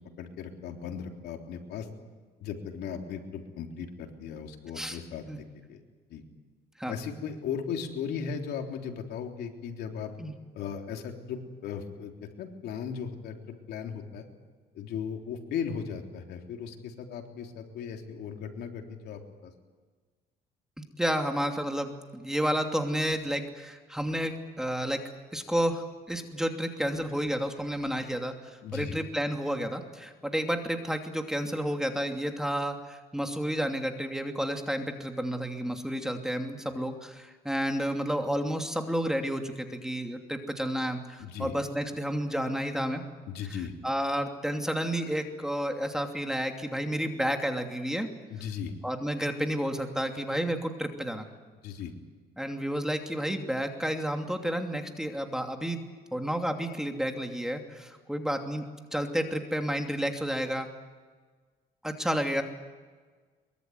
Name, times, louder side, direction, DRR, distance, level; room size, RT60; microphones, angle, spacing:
voice 1, 0.2-1.9 2.4-5.8 6.1-6.2 6.9-10.1 10.5-14.2 14.8-19.5 28.6-29.0 41.2-41.5 43.3-43.7 48.3-48.7 51.6-51.9, left 7 dB, 75° left, 3 dB, 3.6 m, -37 dB
voice 2, 20.8-25.0 25.3-28.3 28.7-43.0 43.5-48.1 48.8-51.2 52.4-55.8 56.1-58.6 58.9-60.7 61.8-62.4, equal, 5° right, 4 dB, 2.8 m, -31 dB
23.5 x 23.0 x 9.4 m, 1.4 s
cardioid pair, 110°, 17 cm